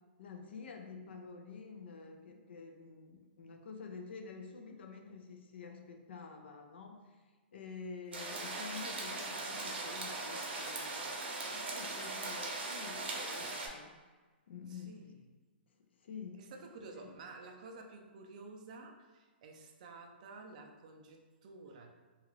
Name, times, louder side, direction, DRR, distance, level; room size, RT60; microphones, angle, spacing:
voice 1, 0.2-7.2 7.5-13.9 14.5-15.0 16.0-16.4 16.9-17.1, left 5 dB, 75° left, 4 dB, 0.5 m, -49 dB
sound 1, 8.1-13.7, right 3 dB, 75° right, 0.7 m, -40 dB
voice 2, 14.7-15.2 16.3-21.9, right 3 dB, 45° right, 3 dB, 0.4 m, -51 dB
2.9 x 2.4 x 3.0 m, 1.4 s
hypercardioid pair, 170°, 6 cm